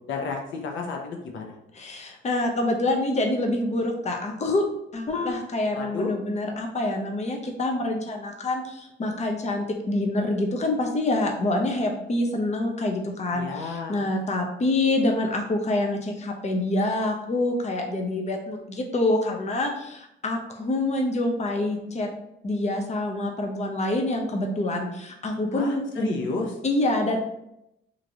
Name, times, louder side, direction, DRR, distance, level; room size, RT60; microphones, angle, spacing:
voice 1, 0.1-1.5 5.7-6.1 13.3-14.1 25.5-26.6, left 3 dB, 75° left, 2 dB, 0.7 m, -32 dB
voice 2, 1.7-4.7 4.9-22.1 22.4-26.1 26.6-27.2, left 2 dB, 35° left, 2 dB, 0.7 m, -26 dB
3.0 x 2.6 x 2.7 m, 0.82 s
cardioid pair, 90°, 20 cm